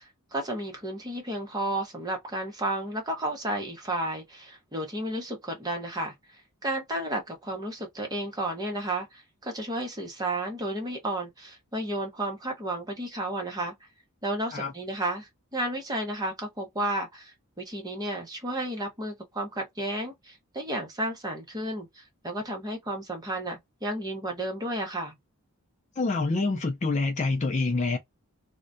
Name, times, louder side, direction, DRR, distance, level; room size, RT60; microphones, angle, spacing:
voice 1, 0.0-6.1 6.6-13.7 14.2-25.2, right 1 dB, 15° right, 0.8 m, -32 dB
voice 2, 26.0-28.0, left 3 dB, 30° left, 0.4 m, -26 dB
2.3 x 2.1 x 2.5 m
head